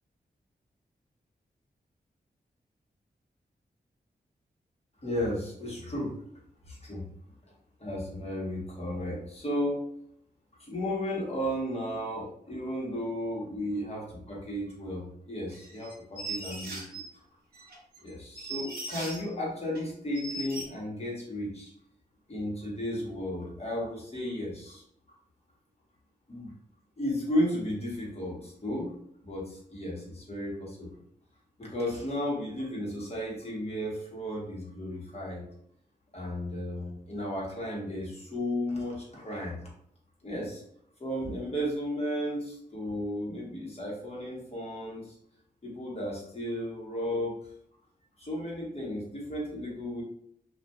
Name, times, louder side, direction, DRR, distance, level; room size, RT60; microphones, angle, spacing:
voice 1, 5.0-6.1 6.7-7.0 7.8-9.8 10.6-17.0 18.0-21.7 22.3-24.8 26.3-26.5 27.0-28.9 29.2-30.9 31.6-35.4 36.1-39.6 40.2-40.6 41.0-45.1 45.6-47.4 48.2-50.0, equal, 35° left, -4 dB, 1.1 m, -34 dB
sound 1, 15.5-17.1 17.5-19.3 19.7-19.8 20.1-20.6, right 2 dB, 60° right, 0.8 m, -39 dB
2.7 x 2.4 x 2.2 m, 0.69 s
cardioid pair, 55°, 18 cm